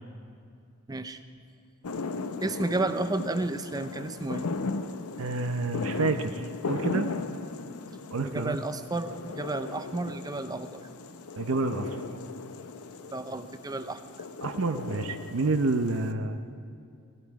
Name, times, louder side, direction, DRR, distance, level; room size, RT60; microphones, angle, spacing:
voice 1, 0.9-1.2 2.4-4.5 8.2-10.8 13.1-14.0, right 2 dB, 15° right, 10 dB, 0.5 m, -32 dB
sound 1, 1.8-16.1, left 3 dB, 90° left, 0.7 m, -37 dB
voice 2, 5.2-7.1 8.1-8.6 11.4-12.0 14.4-16.4, right 3 dB, 65° right, 8 dB, 0.6 m, -29 dB
16.5 x 15.5 x 4.7 m, 2.4 s
head